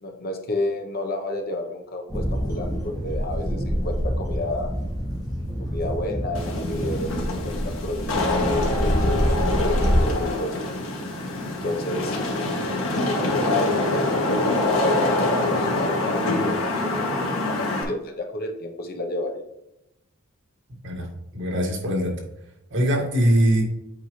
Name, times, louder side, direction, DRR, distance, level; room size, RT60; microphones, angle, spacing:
voice 1, 0.0-4.7 5.6-10.6 11.5-12.2 13.0-19.4, left 1 dB, 50° left, 4 dB, 0.9 m, -31 dB
sound 1, 2.1-10.0, equal, 20° left, 2.2 m, -26 dB
Wind / Rain, 6.3-17.8, left 2 dB, 80° left, 1.4 m, -25 dB
voice 2, 21.3-22.2 22.7-23.6, equal, 60° right, -1 dB, 2.0 m, -21 dB
8.3 x 4.7 x 3.2 m, 0.83 s
head